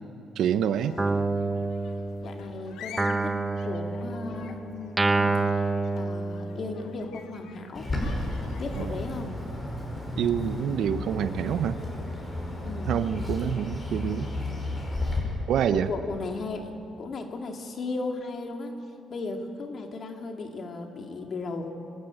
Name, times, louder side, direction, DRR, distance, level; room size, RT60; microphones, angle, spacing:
voice 1, 0.4-1.0 8.8-8.9 10.2-11.8 12.9-14.3 15.5-15.9, right 9 dB, 75° right, 11 dB, 0.8 m, -27 dB
sound 1, 0.8-8.9, left 7 dB, 85° left, 1.3 m, -48 dB
Guitar, 1.0-2.5 3.0-6.9, right 3 dB, 15° right, 1.0 m, -28 dB
voice 2, 2.2-3.4 3.6-5.6 5.9-7.9 8.6-9.4 12.6-13.0 15.7-18.7 19.1-21.7, left 3 dB, 50° left, 3 dB, 2.3 m, -36 dB
Bird, 7.7-15.2, left 2 dB, 30° left, 6.0 m, -33 dB
24.5 x 12.0 x 9.1 m, 2.6 s
cardioid pair, 90°, 0 cm